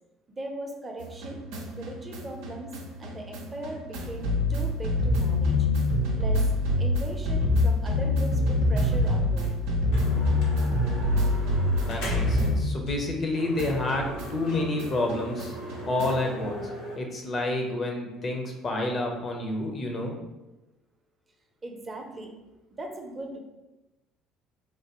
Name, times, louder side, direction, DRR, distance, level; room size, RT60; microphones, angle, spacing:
voice 1, 0.3-1.4 1.7-5.5 6.2-6.5 6.8-9.6 21.6-22.3 22.7-23.4, right 1 dB, 30° right, 2 dB, 0.6 m, -39 dB
sound 1, 1.0-13.3 13.6-16.3, left 1 dB, 75° right, 0.5 m, -26 dB
sound 2, 9.4-9.5 9.9-12.5 12.9-13.0 13.3-17.0, equal, 75° left, 0.8 m, -39 dB
voice 2, 11.8-15.5 15.8-16.7 17.0-20.2, left 2 dB, 40° left, 2 dB, 0.7 m, -29 dB
3.2 x 2.2 x 2.9 m, 1.0 s
hypercardioid pair, 65°, 0 cm